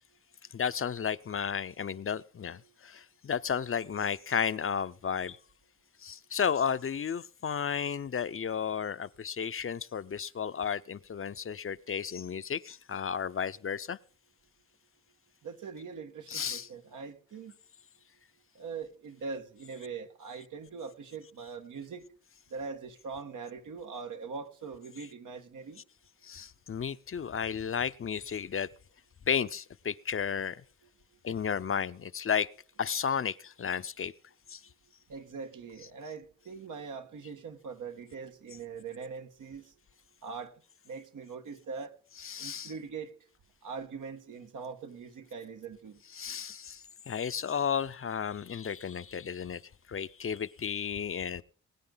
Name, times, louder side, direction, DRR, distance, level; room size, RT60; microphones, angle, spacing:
voice 1, 0.5-5.4 6.0-14.0 16.3-16.7 26.2-28.7 29.3-30.6 31.2-32.5 32.8-34.1 34.5-34.6 42.2-42.7 46.1-49.6 49.9-51.4, left 7 dB, 45° left, 0.6 m, -33 dB
voice 2, 15.4-17.5 18.5-22.1 22.5-25.8 35.1-39.7 40.2-40.5 40.8-41.9 42.4-43.1 43.6-46.0, right 5 dB, 90° right, 1.6 m, -42 dB
21.0 x 9.6 x 3.9 m
cardioid pair, 65°, 30 cm